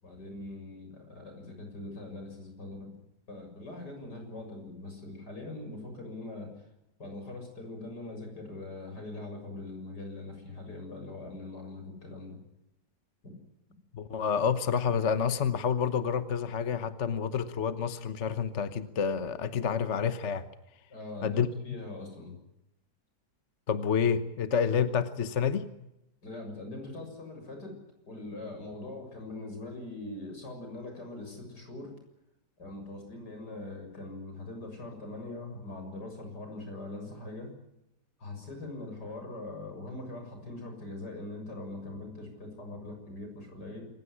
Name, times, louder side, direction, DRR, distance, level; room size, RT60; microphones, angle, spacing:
voice 1, 0.0-3.0 3.3-6.7 7.0-12.4 20.9-22.4 26.2-27.8 28.0-32.0 32.6-37.5 38.2-43.9, left 2 dB, 85° left, 4 dB, 7.6 m, -42 dB
voice 2, 13.9-20.5 21.2-21.5 23.7-25.7, left 7 dB, 50° left, 12 dB, 1.3 m, -28 dB
27.0 x 16.0 x 9.9 m, 0.89 s
omnidirectional pair, 1.8 m